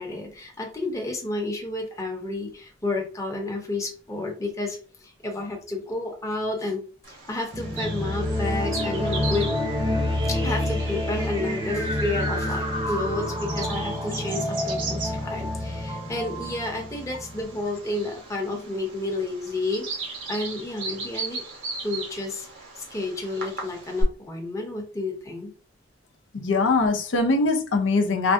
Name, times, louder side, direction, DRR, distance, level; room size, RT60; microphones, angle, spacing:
voice 1, 0.0-6.8 7.1-9.5 10.3-21.4 21.8-22.5 22.8-25.5, left 2 dB, 15° left, 0.7 m, -31 dB
Bird vocalization bird call bird song, 7.0-24.0, right 3 dB, 90° right, 1.0 m, -38 dB
sound 1, 7.5-17.7, left 1 dB, 25° right, 0.7 m, -28 dB
voice 2, 26.3-28.3, left 3 dB, 85° left, 0.6 m, -22 dB
3.3 x 2.2 x 2.6 m
head